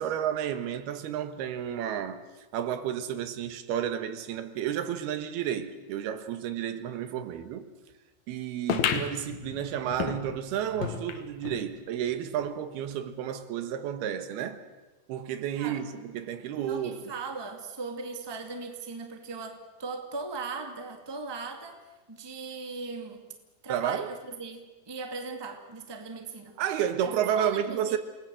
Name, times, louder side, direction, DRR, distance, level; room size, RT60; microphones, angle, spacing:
voice 1, 0.0-2.2 2.5-7.7 8.3-14.6 15.1-17.1 23.7-24.1 26.6-28.0, right 9 dB, 80° right, 3.2 m, -31 dB
sound 1, 8.7-11.7 12.1-12.2 12.4-12.5 13.3-13.4, left 8 dB, 75° left, 3.4 m, -32 dB
voice 2, 16.6-21.8 22.1-23.2 23.6-26.6 27.0-28.0, right 4 dB, 10° right, 1.3 m, -38 dB
28.5 x 19.5 x 7.6 m
omnidirectional pair, 4.6 m